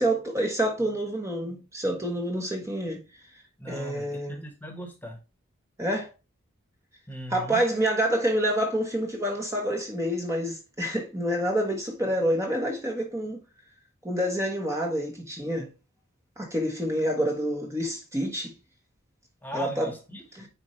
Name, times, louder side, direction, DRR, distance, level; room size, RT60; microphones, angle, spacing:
voice 1, 0.0-3.0 3.7-4.4 5.8-6.1 7.3-13.4 14.0-15.7 16.4-18.5 19.5-19.9 20.3-20.4, equal, 15° right, 1.3 m, -27 dB
voice 2, 3.6-5.2 7.1-7.6 19.4-20.5, left 1 dB, 10° left, 1.5 m, -39 dB
9.8 x 4.4 x 3.2 m
head